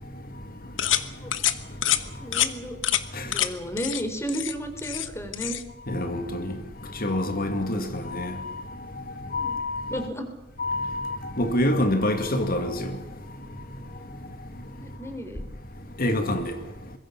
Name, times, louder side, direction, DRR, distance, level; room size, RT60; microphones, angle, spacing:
sound 1, 0.8-1.0 1.3-1.5 1.8-2.0 2.3-2.5 2.8-3.0 3.3-3.5 3.8-4.0 4.3-5.1 5.3-5.6, left 11 dB, 70° left, 1.4 m, -25 dB
voice 1, 2.2-2.9 3.2-5.6 7.7-7.9 9.4-10.3 14.8-15.4, equal, 15° left, 3.8 m, -33 dB
voice 2, 5.9-6.6 7.0-8.6 9.3-10.0 10.6-13.0 16.0-16.5, left 1 dB, 50° left, 2.1 m, -26 dB
25.0 x 22.0 x 6.0 m
head